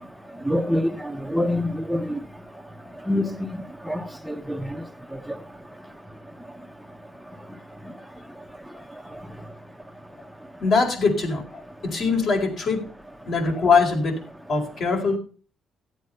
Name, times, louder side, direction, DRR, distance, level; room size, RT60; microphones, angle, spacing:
voice 1, 0.5-0.9 1.3-2.2 3.1-3.3 3.9-4.0 4.3-4.6, left 1 dB, ahead, 1.0 m, -24 dB
voice 2, 10.6-12.8 13.2-14.2 14.5-15.2, left 4 dB, 60° left, 4.4 m, -22 dB
14.0 x 8.2 x 5.5 m
cardioid pair, 90°, 0 cm